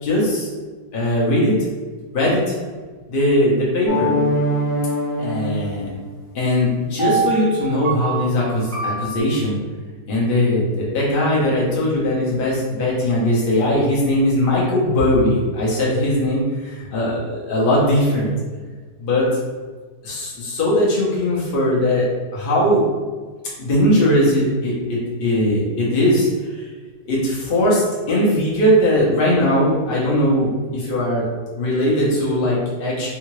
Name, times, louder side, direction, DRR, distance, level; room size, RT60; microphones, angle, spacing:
voice 1, 0.0-0.5 0.9-1.5 2.1-2.6 3.1-4.1 5.2-5.9 6.3-9.6 10.1-18.3 19.0-19.3 20.0-22.1 22.3-22.8 23.6-26.3 26.5-26.7 27.0-31.3 31.6-33.1, left 1 dB, 40° left, -6 dB, 0.9 m, -19 dB
sound 1, 3.9-6.2 7.0-9.2, right 2 dB, 30° right, 0.6 m, -24 dB
3.7 x 2.4 x 3.0 m, 1.4 s
omnidirectional pair, 1.8 m